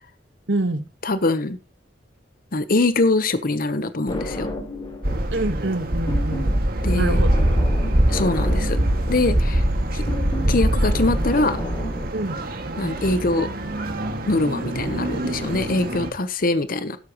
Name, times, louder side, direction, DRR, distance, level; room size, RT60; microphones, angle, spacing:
voice 1, 0.5-0.8 5.3-6.5 6.9-7.3 7.9-8.1 12.1-12.4, right 2 dB, 80° right, 1.4 m, -26 dB
voice 2, 1.0-1.6 2.5-4.5 6.8-7.2 8.1-8.8 9.1-9.7 9.9-10.0 10.5-11.6 12.8-13.5 14.3-17.0, left 2 dB, 50° left, 0.9 m, -23 dB
sound 1, 4.1-5.3 5.6-12.1, left 1 dB, 30° left, 3.8 m, -32 dB
sound 2, 5.0-16.1, right 1 dB, 55° right, 2.0 m, -23 dB
13.0 x 11.0 x 3.0 m
head